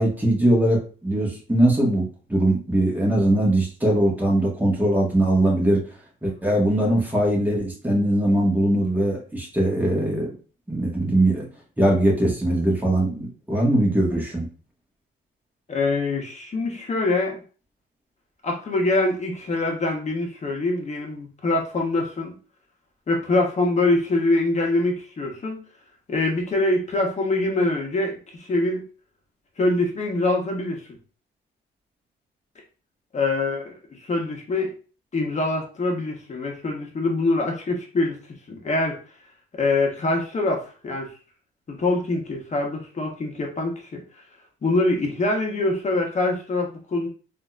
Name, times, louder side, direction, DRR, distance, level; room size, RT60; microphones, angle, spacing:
voice 1, 0.0-2.0 2.3-5.8 6.2-10.3 10.7-11.5 11.8-14.4, right 1 dB, 10° right, -2 dB, 1.6 m, -21 dB
voice 2, 15.7-17.4 18.4-22.3 23.1-25.6 26.1-28.8 29.6-30.8 33.1-34.7 35.1-38.2 38.5-39.0 39.6-41.1 41.7-44.0 44.6-47.1, left 2 dB, 35° left, 0 dB, 1.2 m, -24 dB
4.0 x 2.8 x 2.4 m, 0.37 s
cardioid pair, 90°, 20 cm